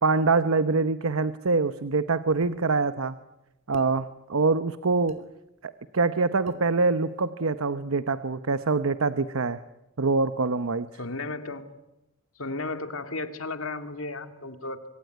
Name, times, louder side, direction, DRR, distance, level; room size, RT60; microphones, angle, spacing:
voice 1, 0.0-3.2 3.7-5.2 5.6-9.6 10.0-10.9, right 3 dB, 90° right, 12 dB, 0.9 m, -25 dB
sound 1, 2.4-2.6 3.7-3.9 5.1-5.2 6.5-6.7, right 1 dB, 35° right, 2.9 m, -45 dB
voice 2, 11.0-11.7 12.4-14.8, left 3 dB, 80° left, 7 dB, 2.3 m, -34 dB
25.5 x 24.5 x 9.4 m, 0.94 s
head